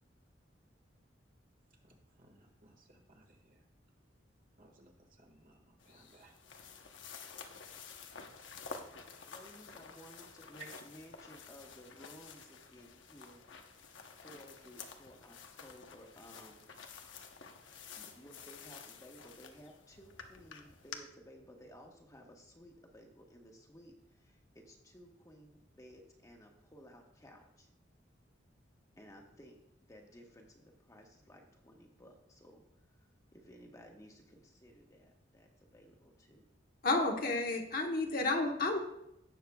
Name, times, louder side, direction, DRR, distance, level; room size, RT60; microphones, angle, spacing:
voice 1, 1.7-3.7 4.6-6.5 7.0-8.5 10.6-10.7, right 4 dB, 45° right, 1.7 m, -61 dB
sound 1, 5.8-21.0, left 5 dB, 85° left, 0.9 m, -51 dB
voice 2, 9.2-13.4 14.1-17.0 18.0-27.7 29.0-36.5, equal, 20° left, 1.2 m, -57 dB
voice 3, 36.8-38.8, left 2 dB, 50° left, 1.1 m, -31 dB
17.0 x 6.7 x 2.3 m
head